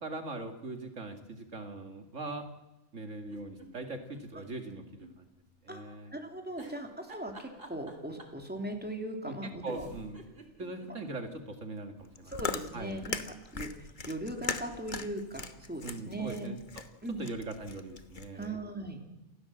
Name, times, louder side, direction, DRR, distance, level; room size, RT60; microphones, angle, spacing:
voice 1, 0.0-2.5 2.9-5.3 5.6-6.1 9.2-10.2 10.6-13.0 15.8-16.6 17.2-18.6, right 2 dB, 85° right, 6 dB, 2.5 m, -41 dB
sound 1, 3.2-5.1 5.5-5.6 6.6-8.4 9.3-9.4 9.7-11.4 11.8-11.9 12.1-12.2, right 3 dB, 50° right, 3.3 m, -48 dB
voice 2, 6.1-9.9 11.1-11.2 12.3-13.2 13.5-16.5 17.0-17.3 18.3-19.0, right 1 dB, 10° right, 3 dB, 3.2 m, -39 dB
Chewing mastication, 12.0-18.5, left 4 dB, 40° left, 1.4 m, -40 dB
28.0 x 16.0 x 7.9 m, 1.0 s
omnidirectional pair, 1.3 m